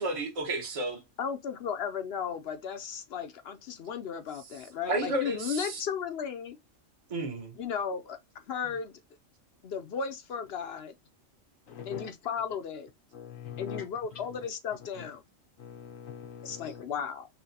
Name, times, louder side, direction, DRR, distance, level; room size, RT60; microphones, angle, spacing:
voice 1, 0.0-1.0 4.9-5.8 7.1-7.5, right 2 dB, 30° right, 0.9 m, -31 dB
voice 2, 1.2-6.6 7.5-8.2 8.5-8.9 9.6-10.9 11.9-12.9 13.6-15.2 16.4-17.3, left 7 dB, 60° left, 0.8 m, -35 dB
voice 3, 11.7-12.1 13.1-13.9 14.1-14.4 14.9-15.1 15.6-16.8, left 8 dB, 85° left, 1.3 m, -42 dB
5.7 x 2.2 x 2.7 m
omnidirectional pair, 1.4 m